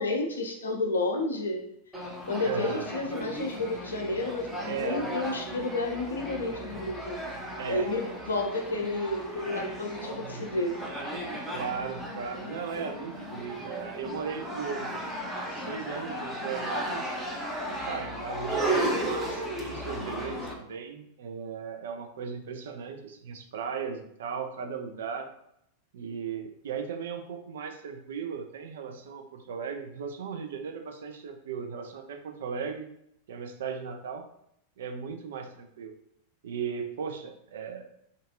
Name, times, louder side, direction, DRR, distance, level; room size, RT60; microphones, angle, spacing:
voice 1, 0.0-1.6 2.3-7.2 7.6-10.8, left 2 dB, 70° left, 3 dB, 0.4 m, -31 dB
sound 1, 1.9-20.5, right 1 dB, 5° right, 0.5 m, -35 dB
voice 2, 2.4-2.8 4.6-5.0 7.6-7.9 10.1-10.5 11.5-14.9 15.5-17.2 17.8-25.3 25.9-32.9 33.3-34.2 34.8-35.9 36.4-37.9, right 6 dB, 60° right, 5 dB, 0.3 m, -37 dB
2.5 x 2.3 x 2.5 m, 0.75 s
figure-of-eight pair, 90°, 0 cm